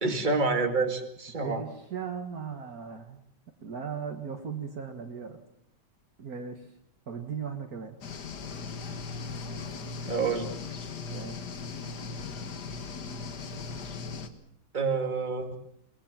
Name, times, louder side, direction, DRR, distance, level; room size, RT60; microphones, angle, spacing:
voice 1, 0.0-1.6 10.0-10.5 14.7-15.6, right 4 dB, 25° right, 5 dB, 2.3 m, -28 dB
voice 2, 1.4-3.2 3.6-5.4 6.2-6.7 7.1-8.0 11.1-11.4, right 6 dB, 60° right, 6 dB, 1.9 m, -37 dB
sound 1, 8.0-14.3, left 4 dB, 70° left, 2.1 m, -38 dB
22.5 x 20.0 x 7.4 m, 0.71 s
omnidirectional pair, 1.9 m